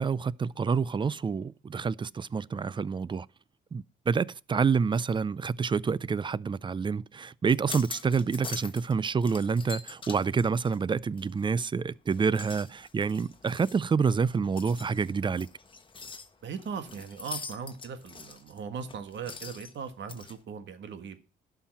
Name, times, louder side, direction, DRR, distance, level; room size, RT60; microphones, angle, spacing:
voice 1, 0.0-3.3 3.7-15.5, right 5 dB, 25° right, 0.4 m, -28 dB
sound 1, 7.5-8.9 9.2-11.7 12.1-20.3, left 4 dB, 25° left, 1.3 m, -44 dB
voice 2, 16.4-21.2, right 6 dB, 65° right, 1.6 m, -39 dB
11.5 x 5.8 x 5.8 m
cardioid pair, 90°, 20 cm